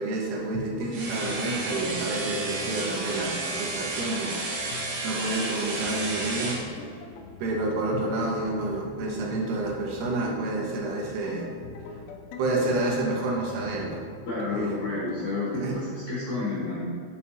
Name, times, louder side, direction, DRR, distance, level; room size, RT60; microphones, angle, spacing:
voice 1, 0.0-6.6 7.4-11.6 12.4-14.1 14.4-14.8 15.5-15.8, right 2 dB, 85° right, -2 dB, 3.7 m, -29 dB
sound 1, 0.5-15.3, left 3 dB, 90° left, 2.3 m, -42 dB
sound 2, 0.9-6.6, right 2 dB, 60° right, 2.6 m, -32 dB
voice 2, 14.3-16.8, left 3 dB, 60° left, -7 dB, 2.1 m, -30 dB
9.1 x 7.2 x 2.9 m, 2.2 s
omnidirectional pair, 5.5 m